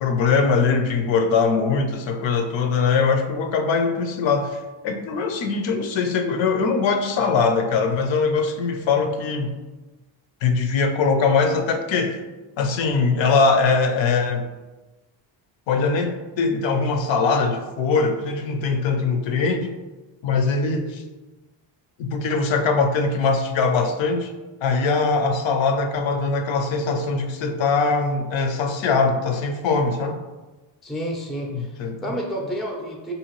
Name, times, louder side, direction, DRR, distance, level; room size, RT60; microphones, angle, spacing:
voice 1, 0.0-9.6 10.4-12.2 12.6-14.5 15.7-19.7 20.2-21.0 22.0-24.3 24.6-30.2 31.5-32.2, left 4 dB, 70° left, 6 dB, 0.6 m, -22 dB
voice 2, 30.8-33.1, equal, ahead, 0 dB, 0.4 m, -30 dB
4.3 x 2.7 x 3.0 m, 1.2 s
cardioid pair, 120°, 48 cm